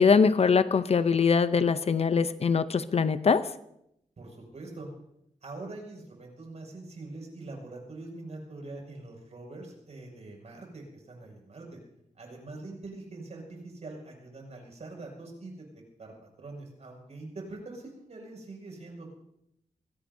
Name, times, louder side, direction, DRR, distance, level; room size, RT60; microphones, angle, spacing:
voice 1, 0.0-3.5, left 5 dB, 50° left, 13 dB, 0.6 m, -22 dB
voice 2, 4.2-4.9 5.4-11.8 12.2-19.2, right 2 dB, 60° right, 0 dB, 6.2 m, -44 dB
22.5 x 17.0 x 2.7 m, 0.79 s
wide cardioid pair, 105°, 13 cm